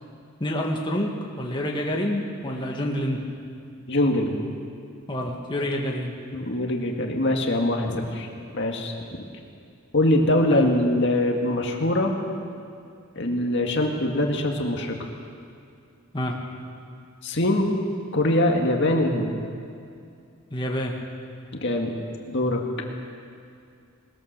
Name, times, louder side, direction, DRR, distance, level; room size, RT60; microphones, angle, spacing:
voice 1, 0.4-3.2 5.1-6.1 10.5-10.7 16.1-16.4 20.5-20.9, left 1 dB, 20° left, -1 dB, 1.9 m, -27 dB
voice 2, 3.9-4.4 6.3-8.3 8.5-8.9 9.9-12.1 13.2-15.0 17.2-17.7 18.1-19.3 21.6-21.9 22.3-22.6, left 1 dB, 55° left, 1 dB, 2.0 m, -23 dB
21.0 x 20.5 x 6.7 m, 2.4 s
head